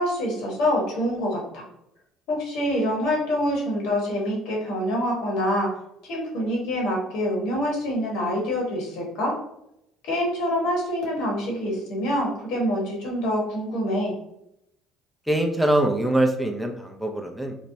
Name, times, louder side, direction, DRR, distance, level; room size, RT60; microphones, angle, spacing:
voice 1, 0.0-1.7 2.3-5.7 6.0-9.3 10.0-14.1, equal, 75° left, -2 dB, 1.1 m, -26 dB
voice 2, 15.3-17.6, right 1 dB, ahead, 2 dB, 0.4 m, -23 dB
2.9 x 2.1 x 2.7 m, 0.80 s
cardioid pair, 105°, 0 cm